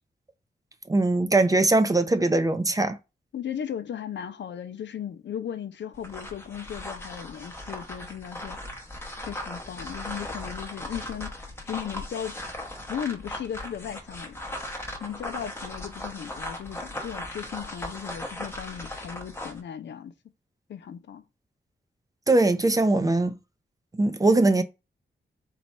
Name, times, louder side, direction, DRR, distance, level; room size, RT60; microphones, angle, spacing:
voice 1, 0.9-3.0 22.3-23.4 23.9-24.6, right 2 dB, 20° right, 0.4 m, -21 dB
voice 2, 3.3-8.6 9.3-12.4 12.9-14.4 15.0-20.1 20.7-21.2, left 9 dB, 80° left, 0.5 m, -36 dB
sound 1, 5.9-19.6, left 1 dB, 15° left, 0.8 m, -38 dB
4.2 x 2.2 x 4.1 m
wide cardioid pair, 175°, 18 cm